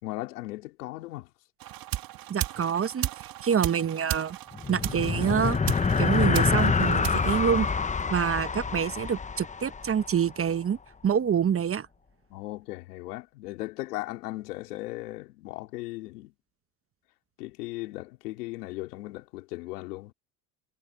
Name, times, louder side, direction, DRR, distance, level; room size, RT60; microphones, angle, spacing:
voice 1, 0.0-1.3 12.3-16.3 17.4-20.1, left 19 dB, 80° left, 4.0 m, -37 dB
sound 1, 1.6-8.2, right 13 dB, 50° right, 1.7 m, -36 dB
voice 2, 2.3-3.1 3.4-4.4 4.7-5.6 6.0-7.7 8.1-10.8 11.0-11.9, right 8 dB, 30° right, 1.2 m, -26 dB
sound 2, 4.5-10.2, left 5 dB, 15° left, 1.0 m, -26 dB
hypercardioid pair, 80°, 45 cm